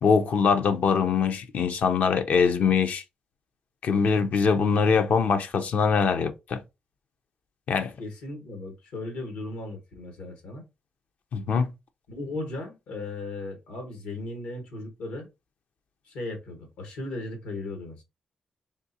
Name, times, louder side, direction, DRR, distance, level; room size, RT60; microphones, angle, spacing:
voice 1, 0.0-3.0 3.8-6.6 7.7-7.9 11.3-11.7, left 6 dB, 70° left, 0.5 m, -23 dB
voice 2, 8.0-10.6 12.1-15.3 16.0-18.0, left 2 dB, 90° left, 1.2 m, -36 dB
3.7 x 2.9 x 2.7 m
supercardioid pair, 55°, 3 cm